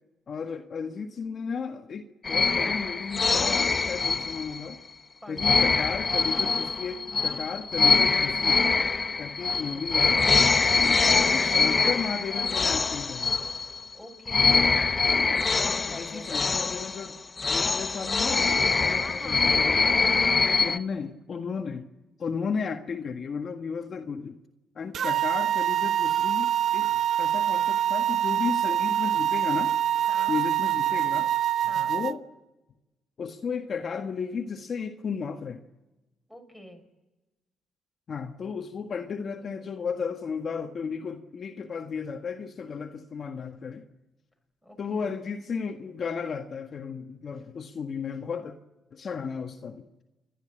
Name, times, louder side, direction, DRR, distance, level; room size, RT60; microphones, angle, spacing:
voice 1, 0.3-4.8 5.3-8.6 9.2-10.2 10.7-13.4 15.9-17.2 17.4-19.8 20.6-21.9 22.2-24.4 24.7-29.8 30.3-31.3 31.7-32.2 33.2-35.6 38.1-43.8 44.8-48.5 48.9-49.9, left 5 dB, 50° left, 1.6 m, -34 dB
sound 1, 2.2-4.7 5.4-13.9 14.3-20.8, left 4 dB, 30° left, 0.8 m, -24 dB
voice 2, 5.2-5.6 9.4-9.8 10.6-11.9 13.9-14.9 15.3-16.6 18.7-20.9 30.1-30.4 31.7-32.0 36.3-36.8 44.6-45.1, equal, ahead, 6.3 m, -46 dB
sound 2, 24.9-32.1, right 11 dB, 60° right, 0.7 m, -25 dB
30.0 x 12.5 x 8.8 m
cardioid pair, 90°, 0 cm